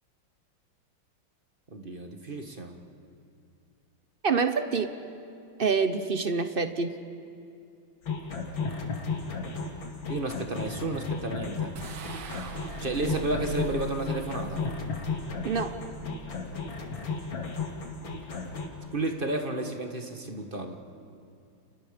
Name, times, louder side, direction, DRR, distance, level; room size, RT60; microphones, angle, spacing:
voice 1, 1.7-2.8 10.1-11.7 12.8-14.7 18.9-20.8, right 2 dB, 25° right, 4 dB, 1.6 m, -32 dB
voice 2, 4.2-4.9 5.6-7.0 15.4-15.7, right 5 dB, 45° right, 9 dB, 0.7 m, -26 dB
sound 1, 8.1-18.7, left 4 dB, 65° left, 3.0 m, -34 dB
sound 2, 11.8-17.1, right 8 dB, 70° right, 2.0 m, -43 dB
30.0 x 29.0 x 5.2 m, 2.5 s
omnidirectional pair, 2.3 m